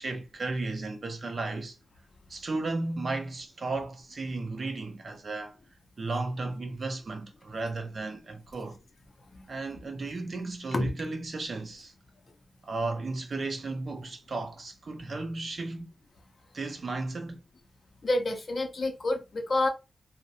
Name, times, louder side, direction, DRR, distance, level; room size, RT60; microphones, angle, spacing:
voice 1, 0.0-1.8 2.3-5.6 6.0-8.8 9.5-11.9 12.6-15.9 16.5-17.4, right 3 dB, 40° right, 0.4 m, -34 dB
voice 2, 18.0-19.7, left 2 dB, 40° left, 0.5 m, -29 dB
2.5 x 2.0 x 2.7 m
wide cardioid pair, 140°, 0 cm